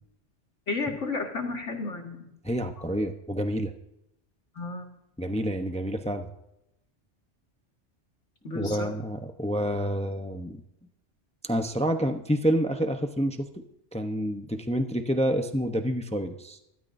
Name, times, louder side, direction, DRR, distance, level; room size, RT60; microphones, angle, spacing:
voice 1, 0.7-2.3 4.6-4.9 8.4-8.9, left 3 dB, 90° left, 1 dB, 2.4 m, -32 dB
voice 2, 2.4-3.7 5.2-6.3 8.5-10.6 11.4-13.5 13.9-16.6, equal, 5° left, 6 dB, 0.7 m, -28 dB
25.0 x 12.5 x 2.7 m, 0.84 s
omnidirectional pair, 1.2 m